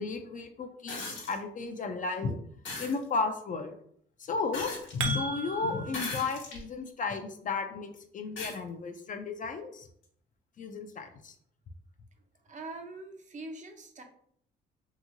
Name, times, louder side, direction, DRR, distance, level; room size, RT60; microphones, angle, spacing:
voice 1, 0.0-2.4 2.8-3.8 4.2-9.9 10.6-11.3, left 4 dB, 40° left, 6 dB, 0.4 m, -34 dB
sound 1, 0.9-1.4 2.7-3.0 4.5-5.2 5.9-6.6 7.3-7.4 8.4-8.6 10.0-10.1, left 3 dB, 75° left, 1.0 m, -38 dB
sound 2, 4.5-6.0, right 5 dB, 85° right, 0.5 m, -35 dB
voice 2, 12.4-14.0, right 2 dB, 40° right, 5 dB, 0.6 m, -43 dB
2.8 x 2.7 x 2.6 m, 0.65 s
cardioid pair, 90°, 20 cm